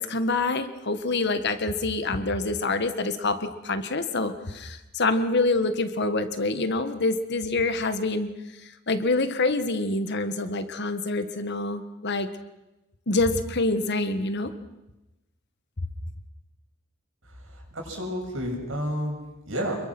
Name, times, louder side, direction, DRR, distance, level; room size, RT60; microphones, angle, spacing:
voice 1, 0.0-8.3 8.6-12.3 13.1-14.5, left 2 dB, 55° left, 9 dB, 1.5 m, -26 dB
voice 2, 17.4-19.9, equal, 70° right, 1 dB, 7.2 m, -31 dB
28.0 x 22.5 x 6.1 m, 1.0 s
head